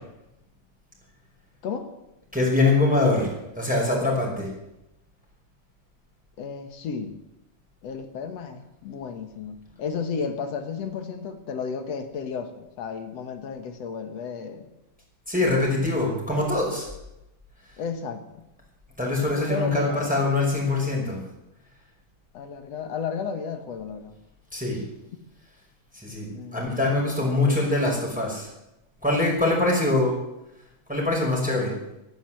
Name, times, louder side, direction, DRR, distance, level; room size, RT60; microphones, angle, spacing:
voice 1, 2.3-3.3 3.6-4.5 15.3-16.9 19.0-21.2 24.5-24.8 26.0-28.5 29.0-30.2 30.9-31.7, left 2 dB, ahead, -3 dB, 5.3 m, -23 dB
voice 2, 6.4-7.2 7.8-14.7 17.8-18.2 19.5-20.1 22.3-24.2 26.3-26.9 27.2-27.6, left 6 dB, 60° left, 7 dB, 2.3 m, -33 dB
14.0 x 12.0 x 7.7 m, 0.89 s
omnidirectional pair, 3.7 m